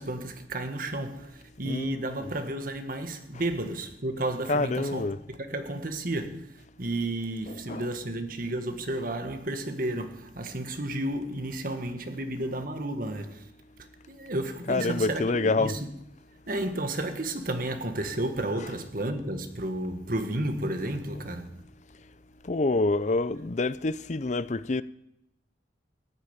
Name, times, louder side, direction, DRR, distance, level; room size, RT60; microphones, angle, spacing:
voice 1, 0.0-13.5 14.1-15.9 16.5-21.6, right 1 dB, 45° right, 1.6 m, -32 dB
voice 2, 1.6-2.3 3.3-3.4 4.5-5.2 7.5-7.9 14.7-15.8 18.6-18.7 21.1-21.3 22.4-24.8, left 3 dB, 40° left, 0.5 m, -27 dB
14.5 x 9.9 x 8.7 m
head